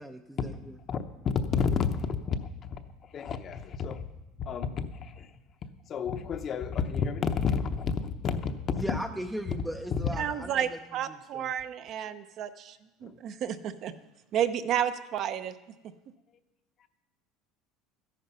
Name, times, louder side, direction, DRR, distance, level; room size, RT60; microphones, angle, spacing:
voice 1, 0.0-0.8 8.7-10.8 11.1-11.5, equal, 5° right, 4 dB, 0.5 m, -38 dB
voice 2, 0.9-2.4 3.1-4.0 4.5-5.3 5.9-8.5, left 6 dB, 35° left, 9 dB, 0.8 m, -30 dB
voice 3, 10.2-13.9 14.3-15.5, right 9 dB, 45° right, 10 dB, 0.7 m, -31 dB
13.5 x 10.5 x 5.5 m, 1.0 s
cardioid pair, 145°, 0 cm